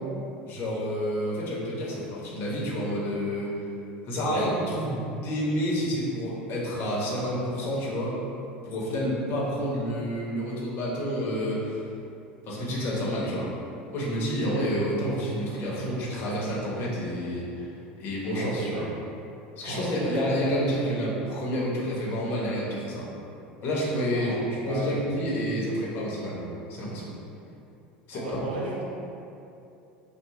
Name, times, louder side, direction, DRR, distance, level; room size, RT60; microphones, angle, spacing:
voice 1, 0.5-3.6 4.1-8.2 8.6-11.8 12.4-13.5 13.9-17.7 18.0-18.8 19.6-23.1 23.6-27.1 28.1-28.4, equal, 50° left, -5 dB, 1.0 m, -29 dB
voice 2, 14.4-14.8 18.3-18.9 19.6-20.4 24.1-25.0 28.1-28.8, right 2 dB, 85° right, -5 dB, 0.8 m, -34 dB
3.0 x 2.3 x 3.7 m, 2.7 s
hypercardioid pair, 85°, 5 cm